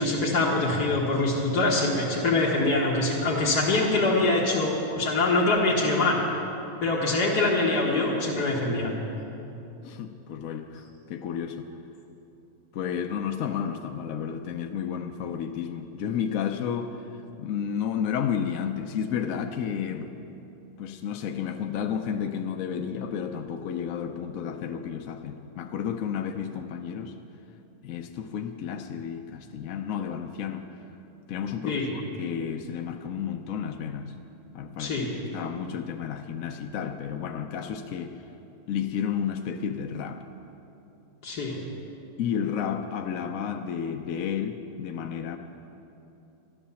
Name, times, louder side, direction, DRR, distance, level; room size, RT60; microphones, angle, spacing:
voice 1, 0.0-6.2 6.8-9.0 31.7-31.9 34.8-35.1 41.2-41.6, left 2 dB, 85° left, -4 dB, 2.1 m, -24 dB
voice 2, 9.8-11.7 12.7-20.2 20.8-27.2 27.8-30.8 31.3-34.1 34.5-35.1 35.3-38.2 38.7-40.2 42.2-45.4, left 8 dB, 65° left, 5 dB, 1.0 m, -32 dB
12.5 x 12.5 x 7.0 m, 2.9 s
omnidirectional pair, 1.7 m